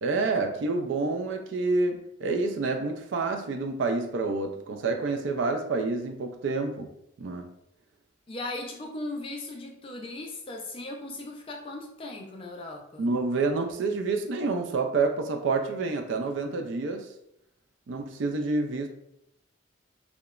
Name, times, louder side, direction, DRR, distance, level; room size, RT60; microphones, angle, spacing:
voice 1, 0.0-6.9 7.2-7.6 13.0-17.1 17.9-18.9, right 3 dB, 70° right, 0.4 m, -28 dB
voice 2, 8.3-13.1, left 2 dB, 25° left, 0.3 m, -38 dB
2.9 x 2.0 x 2.3 m
head